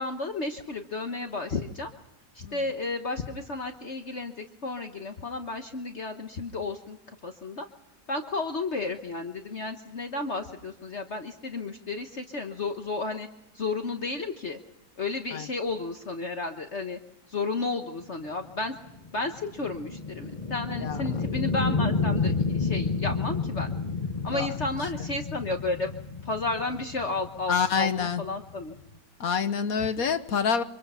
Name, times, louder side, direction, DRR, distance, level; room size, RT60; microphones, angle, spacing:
voice 1, 0.0-1.9 2.3-7.7 8.1-13.3 13.5-14.6 15.0-17.0 17.3-18.7 19.1-23.7 24.2-25.9 26.2-28.8 29.8-30.0, left 3 dB, 45° left, 5 dB, 1.4 m, -32 dB
sound 1, 18.3-29.0, left 4 dB, 30° left, 1.1 m, -31 dB
voice 2, 27.5-28.2 29.2-30.6, left 6 dB, 65° left, 10 dB, 1.5 m, -26 dB
27.0 x 25.5 x 5.6 m, 0.78 s
omnidirectional pair, 1.7 m